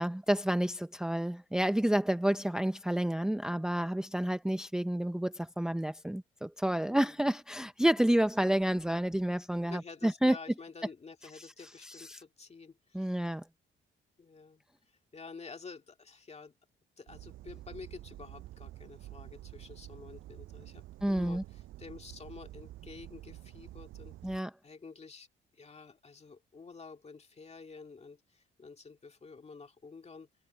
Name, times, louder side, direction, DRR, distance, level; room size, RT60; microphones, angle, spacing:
voice 1, 0.0-10.4 11.4-11.5 11.8-12.2 12.9-13.4 21.0-21.4 24.2-24.5, right 1 dB, 5° right, 0.7 m, -30 dB
voice 2, 9.6-13.2 14.2-14.6 15.1-16.5 17.0-24.3 24.6-25.3 25.5-30.3, left 4 dB, 35° left, 2.2 m, -50 dB
sound 1, 17.1-24.4, right 15 dB, 90° right, 6.6 m, -49 dB
cardioid pair, 90°, 20 cm